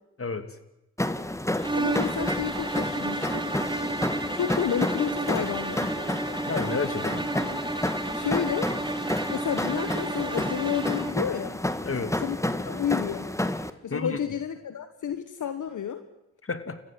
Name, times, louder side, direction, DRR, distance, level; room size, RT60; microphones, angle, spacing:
sound 1, 1.0-13.7, left 1 dB, 10° left, 1.8 m, -30 dB
sound 2, 1.6-11.3, right 2 dB, 15° right, 1.7 m, -32 dB
voice 1, 1.7-3.5 4.3-5.9 7.9-8.7 9.3-11.6 12.2-13.3 13.8-16.0, left 8 dB, 70° left, 9 dB, 1.4 m, -30 dB
voice 2, 6.5-7.2 11.8-12.1 13.9-14.2 16.4-16.8, left 4 dB, 45° left, 9 dB, 2.7 m, -30 dB
30.0 x 15.0 x 7.9 m, 0.89 s
supercardioid pair, 40°, 31 cm